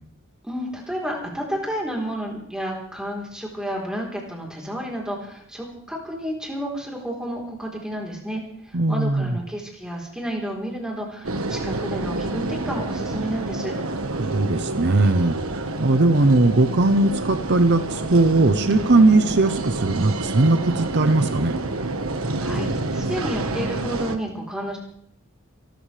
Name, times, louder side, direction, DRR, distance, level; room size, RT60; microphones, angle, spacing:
voice 1, 0.4-13.7 22.4-24.8, equal, 5° right, -2 dB, 3.8 m, -31 dB
voice 2, 8.7-9.4 14.2-21.5, right 2 dB, 55° right, 9 dB, 0.8 m, -19 dB
sound 1, 11.2-24.2, right 2 dB, 85° right, 1.4 m, -28 dB
28.0 x 13.0 x 3.4 m, 0.66 s
head